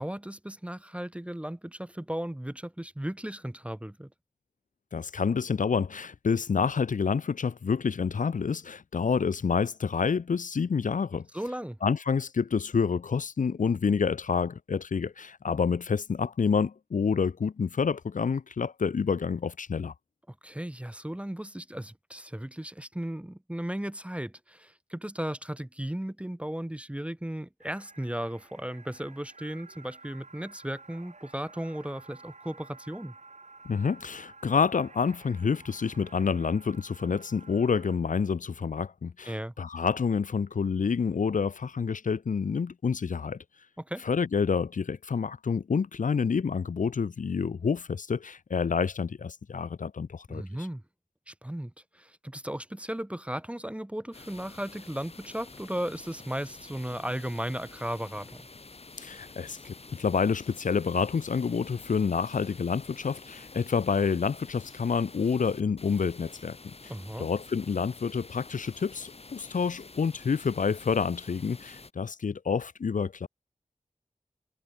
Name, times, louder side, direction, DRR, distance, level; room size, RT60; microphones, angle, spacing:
voice 1, 0.0-4.1 11.3-11.8 20.4-33.1 39.3-39.5 43.8-44.1 50.3-50.8 51.3-58.4 66.9-67.3, right 1 dB, 10° right, 0.6 m, -36 dB
voice 2, 4.9-11.3 11.8-19.9 33.6-43.4 44.0-50.4 59.0-66.6 67.2-73.3, left 5 dB, 75° left, 0.6 m, -28 dB
sound 1, 27.6-38.0, right 3 dB, 60° right, 3.7 m, -52 dB
sound 2, 54.1-71.9, left 3 dB, 50° left, 1.5 m, -49 dB
wide cardioid pair, 60°, 13 cm